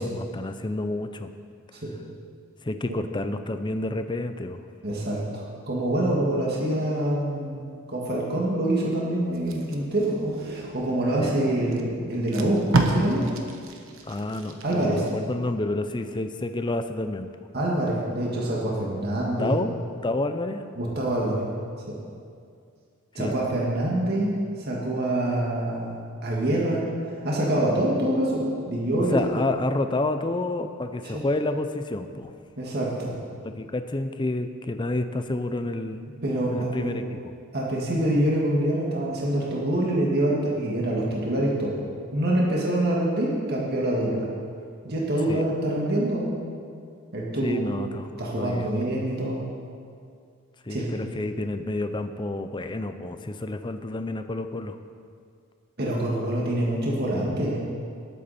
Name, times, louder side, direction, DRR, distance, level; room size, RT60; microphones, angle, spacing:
voice 1, 0.0-1.3 2.6-4.6 11.2-11.3 14.1-17.3 19.4-19.7 20.0-20.7 23.1-23.3 29.1-32.3 33.4-36.0 36.5-37.3 45.3-45.4 47.4-48.1 48.3-48.7 50.6-54.8, left 2 dB, 20° left, 9 dB, 0.5 m, -29 dB
voice 2, 4.8-13.3 14.6-15.0 17.5-19.6 20.8-21.4 21.9-22.0 23.1-24.3 24.6-26.9 27.2-29.5 31.1-31.2 32.6-33.1 36.2-36.9 37.5-41.8 42.1-44.3 44.8-46.4 47.1-47.6 47.9-49.4 50.7-50.9 55.8-57.6, right 1 dB, 45° right, -4 dB, 1.9 m, -25 dB
Packing tape duct tape, 9.3-11.0 11.7-11.8 12.1-15.1 15.5-15.8, right 2 dB, 65° right, 1.1 m, -29 dB
19.0 x 8.3 x 4.3 m, 2.3 s
head